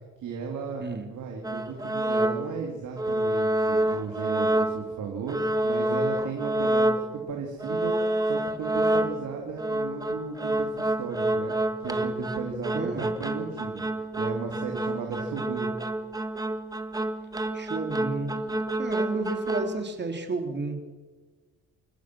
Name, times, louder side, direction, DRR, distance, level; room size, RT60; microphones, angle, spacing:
voice 1, 0.2-0.8 1.1-15.7, right 5 dB, 75° right, 1 dB, 3.2 m, -35 dB
sound 1, 1.4-2.6 3.0-5.0 5.3-7.3 7.6-19.8, right 1 dB, 10° right, 1.8 m, -28 dB
voice 2, 12.7-13.1 17.5-18.4 18.7-20.8, right 3 dB, 35° right, 5 dB, 3.4 m, -32 dB
28.5 x 15.0 x 6.2 m, 1.4 s
cardioid pair, 90°, 30 cm